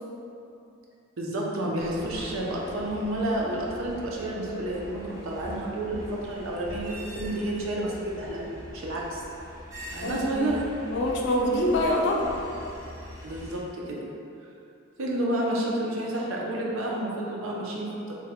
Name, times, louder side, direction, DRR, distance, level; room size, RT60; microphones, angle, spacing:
voice 1, 1.2-9.2 9.9-10.7 13.2-14.0 15.0-18.1, right 1 dB, 85° right, -3 dB, 0.6 m, -30 dB
sound 1, 1.8-13.6, equal, 15° right, 0.4 m, -43 dB
voice 2, 10.0-10.6 10.9-12.3, left 1 dB, 55° left, -1 dB, 0.4 m, -25 dB
3.4 x 2.1 x 3.5 m, 2.7 s
head